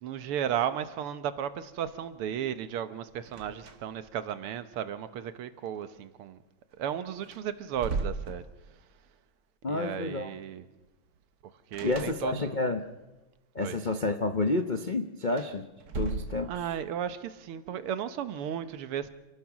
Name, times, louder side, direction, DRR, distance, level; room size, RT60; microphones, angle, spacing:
voice 1, 0.0-6.4 6.8-8.4 9.7-10.6 11.7-12.6 13.6-13.8 16.4-19.1, right 9 dB, 80° right, 1.9 m, -34 dB
sound 1, 3.3-4.1 4.4-4.5 6.7-6.8 7.2-9.0 11.7-12.7 15.2-16.9, right 4 dB, 50° right, 1.7 m, -37 dB
voice 2, 9.6-10.3 11.8-12.8 13.5-15.6 15.9-16.5, left 2 dB, 70° left, 0.4 m, -29 dB
28.0 x 17.5 x 6.1 m
omnidirectional pair, 2.4 m